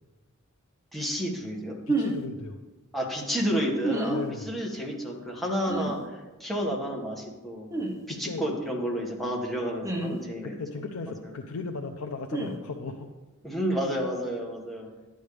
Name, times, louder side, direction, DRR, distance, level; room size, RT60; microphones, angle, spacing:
voice 1, 0.9-1.8 2.9-7.7 8.1-10.6 11.2-11.3 13.4-14.9, equal, ahead, -2 dB, 1.6 m, -31 dB
voice 2, 1.9-2.6 4.1-4.5 8.1-8.5 10.4-13.1, left 4 dB, 85° left, 3 dB, 0.6 m, -36 dB
sound 1, 1.9-2.2 3.8-4.2 5.7-5.9 7.7-7.9 9.8-10.2 12.3-12.5, right 2 dB, 15° right, 1.1 m, -28 dB
11.5 x 9.1 x 3.4 m, 1.2 s
head